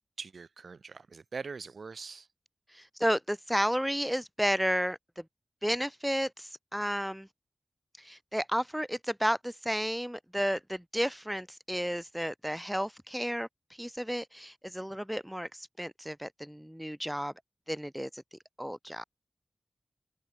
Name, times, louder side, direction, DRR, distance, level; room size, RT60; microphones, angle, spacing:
voice 1, 0.2-2.3, right 4 dB, 70° right, 4.7 m, -42 dB
voice 2, 2.7-5.2 5.6-7.3 8.0-13.5 13.8-17.3 17.7-18.2 18.6-19.0, equal, 5° right, 3.2 m, -32 dB
wide cardioid pair, 90°, 0 cm